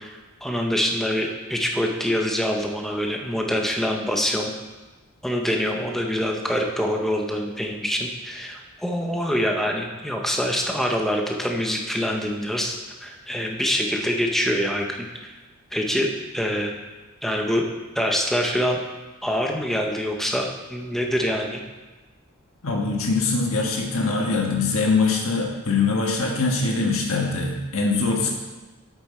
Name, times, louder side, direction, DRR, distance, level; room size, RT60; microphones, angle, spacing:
voice 1, 0.0-4.5 5.2-12.7 13.0-15.3 15.7-16.7 17.2-17.6 17.9-18.8 19.2-21.6, equal, ahead, 1 dB, 0.7 m, -25 dB
voice 2, 22.6-28.3, left 3 dB, 65° left, 0 dB, 1.5 m, -23 dB
7.8 x 7.1 x 4.3 m, 1.2 s
head